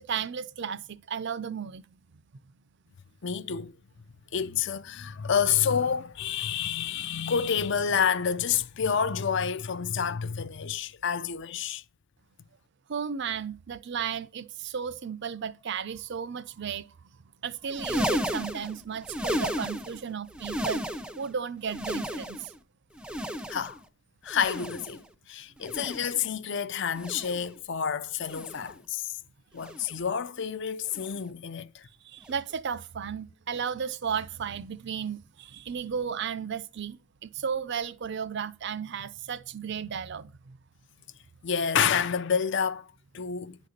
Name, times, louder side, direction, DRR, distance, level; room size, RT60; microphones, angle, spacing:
voice 1, 0.0-1.8 12.9-16.9 17.4-20.8 21.2-22.5 32.0-40.6, right 7 dB, 55° right, 0.5 m, -34 dB
voice 2, 3.2-3.7 4.3-11.8 23.5-23.8 24.2-29.1 29.5-31.9 41.4-43.6, left 7 dB, 55° left, 0.6 m, -29 dB
sound 1, 17.6-20.0 20.3-21.3 21.6-22.6 23.0-23.8 24.3-25.0 25.6-26.3 26.9-27.5 28.2-28.8 29.6-30.0 30.9-31.2 32.2-32.4 33.6-33.7, equal, 5° right, 0.5 m, -34 dB
10.5 x 4.1 x 6.4 m
head